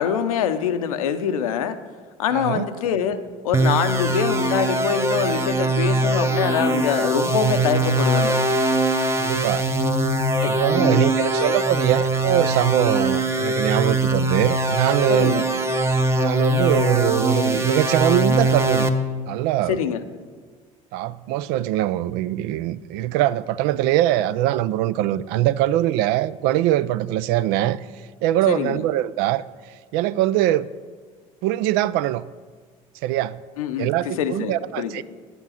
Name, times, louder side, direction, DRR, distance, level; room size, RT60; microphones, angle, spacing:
voice 1, 0.0-1.8 2.2-8.4 10.4-11.0 15.1-15.5 19.7-20.0 28.5-28.8 33.6-33.9 34.2-35.0, left 8 dB, 85° left, 0.6 m, -24 dB
voice 2, 2.3-2.6 9.2-9.7 10.5-15.4 16.2-18.9 19.3-19.8 20.9-27.8 28.2-29.4 29.9-30.7 31.4-32.2 33.0-33.4 33.8-35.0, right 13 dB, 65° right, 0.4 m, -22 dB
sound 1, 3.5-18.9, right 1 dB, 15° right, 0.8 m, -22 dB
9.6 x 7.2 x 5.6 m
hypercardioid pair, 70°, 17 cm